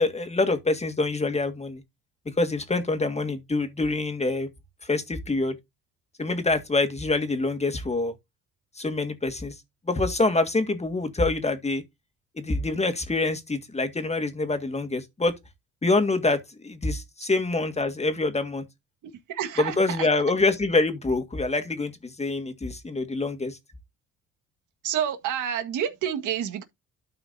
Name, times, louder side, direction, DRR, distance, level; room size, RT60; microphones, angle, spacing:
voice 1, 0.0-1.8 2.4-4.5 4.8-5.6 6.2-8.1 8.8-9.6 9.9-11.8 12.4-15.3 15.8-18.6 19.6-23.6, left 3 dB, 20° left, 2.0 m, -25 dB
voice 2, 19.3-20.1 24.8-26.6, right 9 dB, 80° right, 1.8 m, -28 dB
12.5 x 5.8 x 2.8 m
cardioid pair, 90°, 30 cm